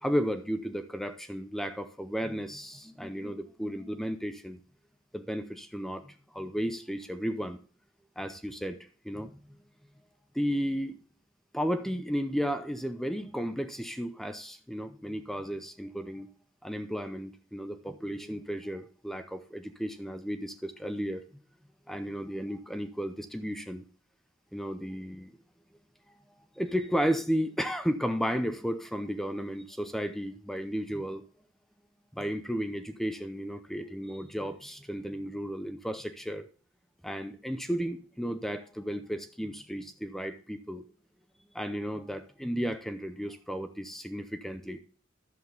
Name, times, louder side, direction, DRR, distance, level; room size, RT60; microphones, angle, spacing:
voice 1, 0.0-4.6 5.1-7.6 8.2-9.6 10.3-11.0 11.5-16.3 16.6-21.2 21.9-23.8 24.5-25.3 26.6-31.2 32.1-36.4 37.0-40.9 41.5-44.8, equal, ahead, 9 dB, 0.6 m, -33 dB
11.0 x 7.6 x 3.9 m, 0.42 s
head